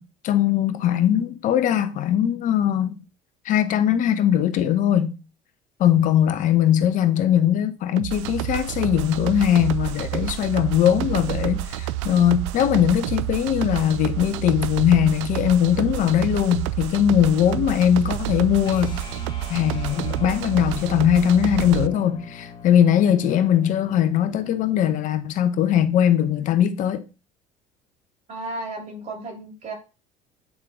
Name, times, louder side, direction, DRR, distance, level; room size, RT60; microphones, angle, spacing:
voice 1, 0.2-3.0 3.4-5.2 5.8-19.0 19.5-27.0, left 10 dB, 60° left, 1.0 m, -20 dB
sound 1, 8.0-21.9, right 14 dB, 85° right, 0.4 m, -29 dB
sound 2, 18.6-25.0, left 4 dB, 30° left, 1.4 m, -42 dB
voice 2, 28.3-29.7, right 2 dB, 50° right, 3.0 m, -33 dB
8.6 x 3.7 x 3.7 m
supercardioid pair, 80°, 15 cm